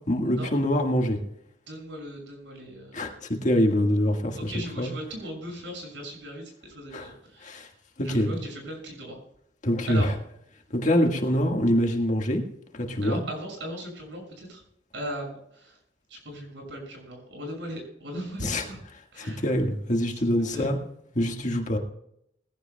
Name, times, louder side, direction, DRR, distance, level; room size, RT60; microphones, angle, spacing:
voice 1, 0.1-1.2 2.9-4.9 6.9-7.1 7.4-7.7 8.0-8.3 9.6-10.1 10.7-12.4 12.7-13.2 18.4-18.6 19.2-20.8 21.1-21.8, equal, 45° left, 3 dB, 1.7 m, -25 dB
voice 2, 1.7-3.0 4.5-7.6 8.0-9.2 9.9-10.1 13.0-14.6 14.9-15.8 16.1-18.8 19.1-19.4 20.5-20.7, equal, 80° right, 1 dB, 6.5 m, -38 dB
21.0 x 15.5 x 2.3 m, 0.74 s
head